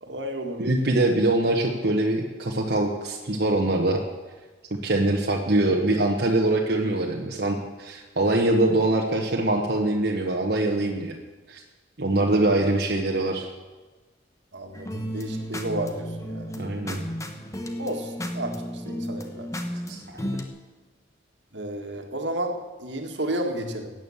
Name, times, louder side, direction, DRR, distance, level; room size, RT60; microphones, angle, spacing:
voice 1, 0.0-0.6 12.1-12.4 14.5-16.5 17.8-19.5 21.5-22.5 22.8-23.9, right 1 dB, 75° right, 4 dB, 1.9 m, -32 dB
voice 2, 0.6-4.0 4.7-11.2 11.5-11.6 12.0-13.5 16.6-17.0 19.9-20.2, right 2 dB, 60° right, -1 dB, 1.3 m, -23 dB
sound 1, 14.7-20.5, equal, 15° left, 1.2 m, -33 dB
16.0 x 9.2 x 7.3 m, 1.2 s
head